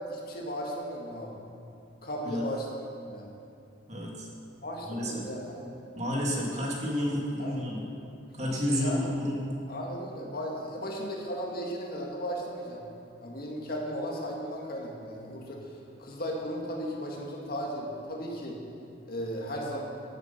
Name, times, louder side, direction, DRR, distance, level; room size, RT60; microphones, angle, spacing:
voice 1, 0.1-1.3 2.0-3.3 4.6-5.7 7.4-7.7 8.7-9.1 9.7-12.8 13.2-18.6 19.1-19.8, equal, 50° left, -2 dB, 2.0 m, -36 dB
voice 2, 3.9-4.3 4.8-5.2 6.0-7.9 8.4-9.4, equal, 35° right, -3 dB, 2.2 m, -30 dB
15.0 x 8.2 x 5.8 m, 2.7 s
head